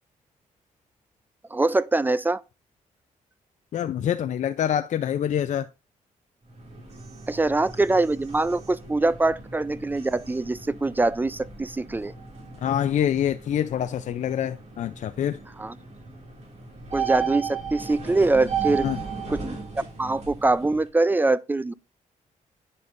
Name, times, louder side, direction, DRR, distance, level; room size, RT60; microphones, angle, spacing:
voice 1, 1.5-2.4 7.3-12.1 15.6-15.7 16.9-18.9 19.3-19.6 20.0-21.7, right 2 dB, 15° right, 0.3 m, -23 dB
voice 2, 3.7-5.7 12.6-15.4 18.8-19.0, left 10 dB, 60° left, 0.4 m, -26 dB
sound 1, 6.4-20.9, right 6 dB, 50° right, 2.2 m, -36 dB
9.6 x 5.4 x 2.5 m
cardioid pair, 100°, 14 cm